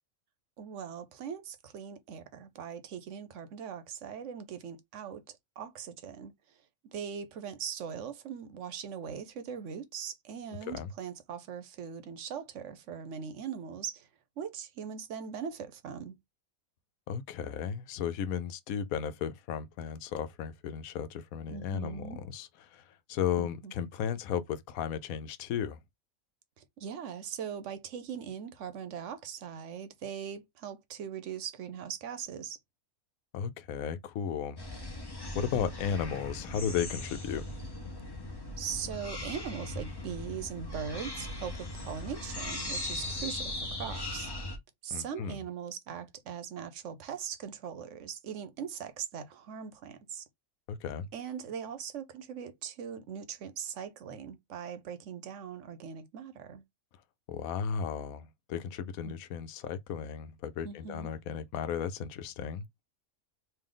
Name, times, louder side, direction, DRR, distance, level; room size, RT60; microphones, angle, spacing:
voice 1, 0.6-5.2 5.6-6.3 6.8-14.1 14.4-16.2 21.5-22.2 23.4-23.7 26.6-32.6 35.3-35.7 38.6-44.5 44.8-50.2 51.1-56.6 59.0-59.2 60.6-61.1, right 7 dB, 65° right, 1.0 m, -40 dB
voice 2, 17.1-25.8 33.3-34.6 35.3-37.4 44.9-45.4 50.7-51.1 57.3-62.8, left 8 dB, 90° left, 1.0 m, -35 dB
sound 1, 34.6-44.6, left 2 dB, 20° left, 0.8 m, -39 dB
3.3 x 2.7 x 3.7 m
omnidirectional pair, 1.4 m